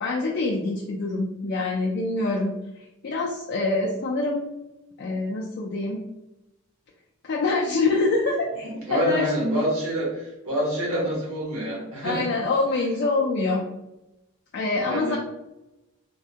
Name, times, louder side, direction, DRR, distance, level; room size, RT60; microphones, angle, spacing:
voice 1, 0.0-4.5 5.0-6.0 7.2-9.3 12.0-13.6 14.5-15.2, left 3 dB, 45° left, -2 dB, 0.3 m, -25 dB
voice 2, 8.6-12.3 14.8-15.2, equal, 70° right, -4 dB, 1.2 m, -26 dB
3.5 x 2.1 x 2.7 m, 0.93 s
head